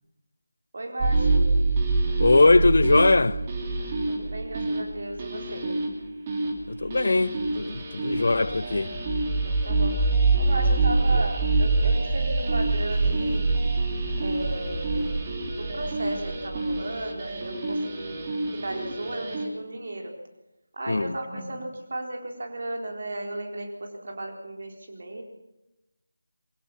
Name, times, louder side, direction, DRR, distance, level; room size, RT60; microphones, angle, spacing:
voice 1, 0.7-1.5 4.1-5.7 9.4-10.1 10.4-13.5 14.2-18.3 18.5-20.2 20.7-25.2, right 1 dB, 45° right, 4.0 m, -35 dB
sound 1, 1.0-19.5, right 3 dB, 25° right, 3.0 m, -26 dB
voice 2, 2.2-3.4 6.7-8.9 11.1-11.2 20.9-21.2, left 2 dB, 55° left, 0.8 m, -21 dB
23.5 x 16.0 x 7.2 m
figure-of-eight pair, 160°, 0 cm